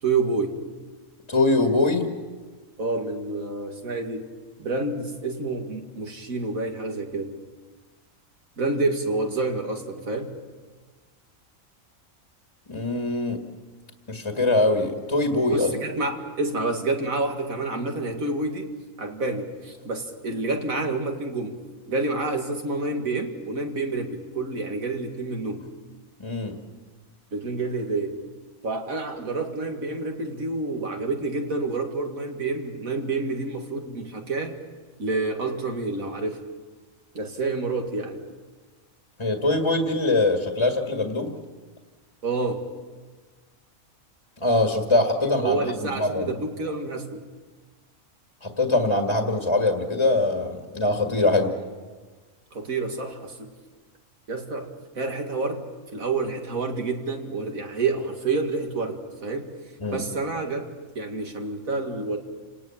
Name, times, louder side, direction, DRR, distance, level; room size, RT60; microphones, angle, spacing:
voice 1, 0.0-0.6 2.8-4.3 4.6-7.3 8.6-10.3 15.5-18.7 19.0-21.6 21.9-25.6 27.3-28.2 28.6-34.6 35.0-36.4 37.1-38.2 42.2-42.7 45.2-47.3 52.5-53.5 54.3-54.7 55.0-55.7 55.9-59.5 59.9-62.2, right 3 dB, 85° right, 3 dB, 2.6 m, -28 dB
voice 2, 1.3-2.1 12.7-13.4 14.1-15.7 26.2-26.5 39.2-41.3 44.4-45.6 46.0-46.2 48.4-51.5 59.8-60.0, left 2 dB, 20° left, 3 dB, 1.9 m, -22 dB
29.0 x 18.5 x 7.3 m, 1.4 s
omnidirectional pair, 1.4 m